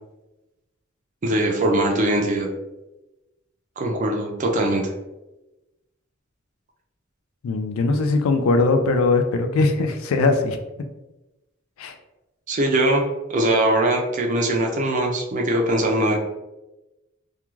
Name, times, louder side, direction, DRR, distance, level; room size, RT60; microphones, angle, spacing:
voice 1, 1.2-2.5 3.8-4.9 12.5-13.0 13.3-16.2, right 1 dB, 35° right, 1 dB, 0.4 m, -21 dB
voice 2, 7.4-10.6 11.8-12.0, left 3 dB, 80° left, 7 dB, 0.3 m, -20 dB
2.3 x 2.3 x 3.0 m, 1.0 s
head